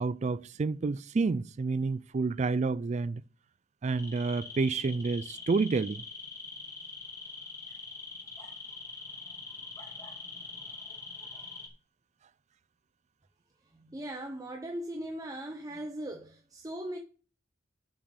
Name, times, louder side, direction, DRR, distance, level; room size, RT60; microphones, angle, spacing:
voice 1, 0.0-3.2 3.8-6.0, right 4 dB, 35° right, 0.3 m, -29 dB
sound 1, 3.8-11.7, left 3 dB, 15° left, 2.8 m, -44 dB
voice 2, 13.7-17.0, right 1 dB, 20° right, 0.8 m, -39 dB
8.2 x 6.0 x 7.2 m
head